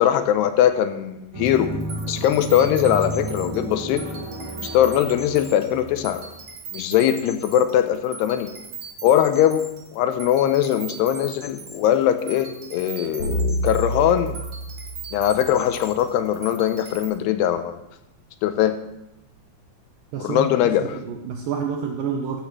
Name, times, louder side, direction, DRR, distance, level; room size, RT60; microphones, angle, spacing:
voice 1, 0.0-1.7 2.1-4.0 4.7-6.2 6.7-8.5 9.0-14.4 15.1-17.8 18.4-18.8 20.2-21.0, left 11 dB, 80° left, 9 dB, 2.6 m, -21 dB
sound 1, 1.3-6.4, right 1 dB, 60° right, 3.8 m, -32 dB
sound 2, 1.4-17.1, right 5 dB, 45° right, 2.5 m, -40 dB
sound 3, 13.2-15.7, equal, 40° left, 3.3 m, -28 dB
voice 2, 20.1-20.5 20.8-22.4, right 7 dB, 90° right, 3 dB, 1.9 m, -28 dB
14.0 x 12.0 x 3.1 m, 0.86 s
omnidirectional pair, 5.0 m